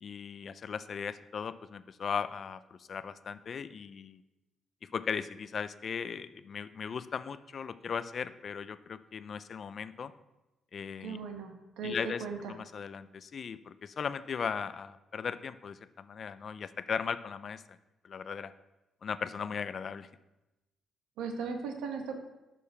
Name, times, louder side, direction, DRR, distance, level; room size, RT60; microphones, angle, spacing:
voice 1, 0.0-4.2 4.9-10.1 10.7-11.2 11.8-17.6 18.0-18.5 19.0-20.1, left 6 dB, 50° left, 14 dB, 0.4 m, -37 dB
voice 2, 11.0-12.6 21.2-22.1, right 4 dB, 90° right, 5 dB, 1.1 m, -37 dB
6.5 x 5.3 x 5.6 m, 1.0 s
cardioid pair, 90°, 0 cm